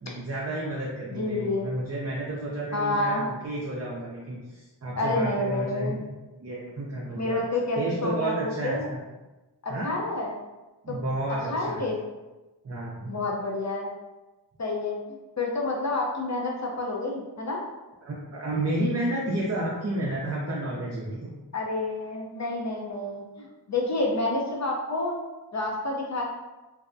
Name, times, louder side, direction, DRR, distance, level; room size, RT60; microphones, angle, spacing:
voice 1, 0.0-6.0 6.4-7.4 7.8-9.0 9.7-9.9 10.8-11.8 12.6-13.1 18.0-21.3, right 1 dB, 35° right, -4 dB, 0.5 m, -31 dB
voice 2, 1.1-1.7 2.7-3.3 5.0-6.0 7.1-8.9 9.6-10.3 10.9-11.0 11.5-12.0 13.1-13.9 14.6-17.6 21.5-25.2 25.5-26.2, left 2 dB, 40° left, -2 dB, 0.6 m, -29 dB
2.7 x 2.1 x 2.5 m, 1.1 s
wide cardioid pair, 45°, 43 cm